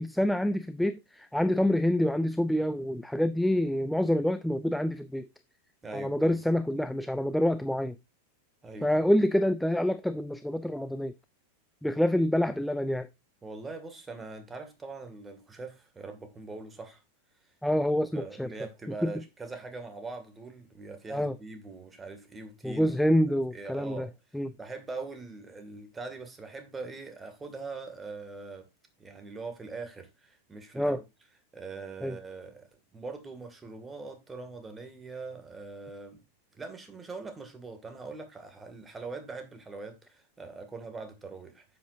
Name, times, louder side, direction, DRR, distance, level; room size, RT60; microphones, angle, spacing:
voice 1, 0.0-5.3 5.9-8.0 8.8-11.1 11.8-13.1 17.6-18.5 19.0-19.1 21.1-21.4 22.6-24.1 24.3-24.5 30.8-31.0 32.0-32.2, left 1 dB, ahead, 0.5 m, -27 dB
voice 2, 5.8-6.4 8.6-8.9 13.4-17.0 18.1-23.0 23.5-24.1 24.6-28.7 29.0-31.0 31.5-36.2 36.5-41.6, right 3 dB, 15° right, 2.1 m, -42 dB
9.8 x 7.8 x 2.6 m
figure-of-eight pair, 90°, 0 cm